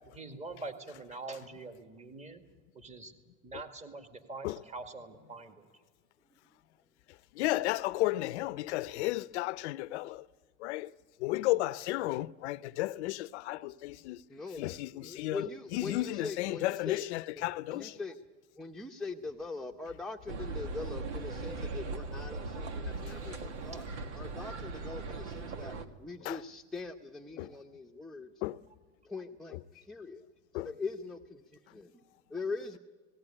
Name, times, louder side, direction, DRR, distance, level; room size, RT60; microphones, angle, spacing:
voice 1, 0.0-2.4 2.7-3.1 3.4-5.7, right 3 dB, 20° right, 2.0 m, -44 dB
voice 2, 7.1-10.3 10.6-10.9 11.2-14.2 14.6-18.0 23.0-23.4 26.2-26.4 27.4-27.5 28.4-28.6 29.5-29.6 30.5-30.7, left 18 dB, 80° left, 0.7 m, -34 dB
voice 3, 14.3-14.6 15.0-17.0 17.7-18.2 18.6-23.8 24.1-28.3 29.0-30.2 30.5-31.9 32.3-32.8, left 3 dB, ahead, 0.8 m, -42 dB
sound 1, 20.3-25.9, right 3 dB, 90° right, 1.7 m, -39 dB
18.5 x 17.5 x 9.9 m
supercardioid pair, 110°, 34 cm